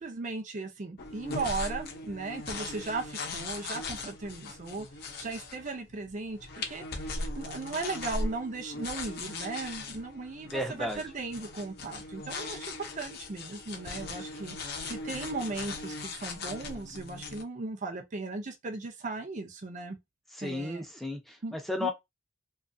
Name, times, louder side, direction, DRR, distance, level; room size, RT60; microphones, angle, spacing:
voice 1, 0.0-4.9 5.2-6.4 6.7-6.8 7.3-14.5 14.8-20.0 20.4-20.8 21.4-21.5 21.8-21.9, right 3 dB, 40° right, 0.5 m, -37 dB
sound 1, 1.0-17.4, left 3 dB, 55° left, 0.6 m, -39 dB
voice 2, 10.5-11.0 20.3-21.9, left 1 dB, ahead, 0.6 m, -33 dB
2.7 x 2.4 x 2.6 m
head